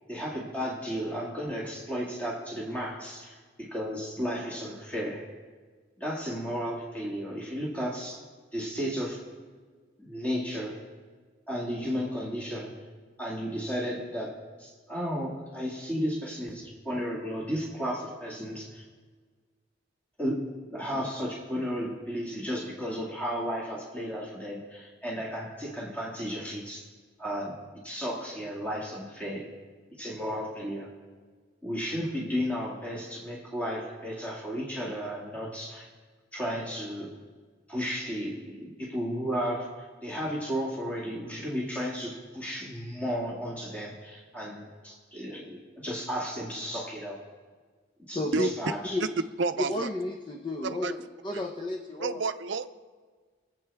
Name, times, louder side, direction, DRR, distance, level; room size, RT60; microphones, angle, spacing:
voice 1, 0.1-5.2 6.0-8.2 8.5-9.2 10.0-10.8 11.5-12.7 13.2-14.3 14.6-18.8 20.2-20.4 20.7-26.8 27.2-27.5 27.8-29.4 30.0-30.9 31.6-35.9 36.3-37.1 37.7-47.2 48.1-49.0, equal, 10° left, -5 dB, 2.0 m, -33 dB
voice 2, 48.1-48.5 48.9-49.1 49.7-51.0 51.2-52.2, left 2 dB, 25° left, 3 dB, 0.7 m, -32 dB
voice 3, 49.4-49.9 50.6-50.9 51.3-51.4 52.0-52.7, right 4 dB, 80° right, 11 dB, 0.6 m, -30 dB
24.5 x 8.2 x 3.5 m, 1.5 s
head